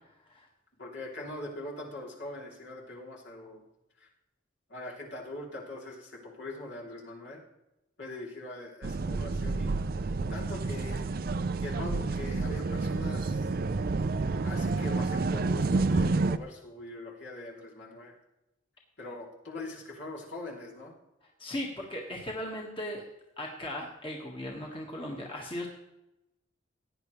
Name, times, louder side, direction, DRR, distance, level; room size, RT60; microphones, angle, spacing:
voice 1, 0.8-3.6 4.0-4.1 4.7-7.4 8.0-9.7 10.3-11.1 11.6-13.4 14.4-18.1 19.0-20.9, left 2 dB, 65° left, -3 dB, 3.1 m, -42 dB
sound 1, 8.8-16.4, right 3 dB, 50° right, 0.5 m, -29 dB
voice 2, 21.4-23.0 23.4-25.7, left 1 dB, 25° left, -2 dB, 1.6 m, -37 dB
17.0 x 9.8 x 3.2 m, 0.92 s
head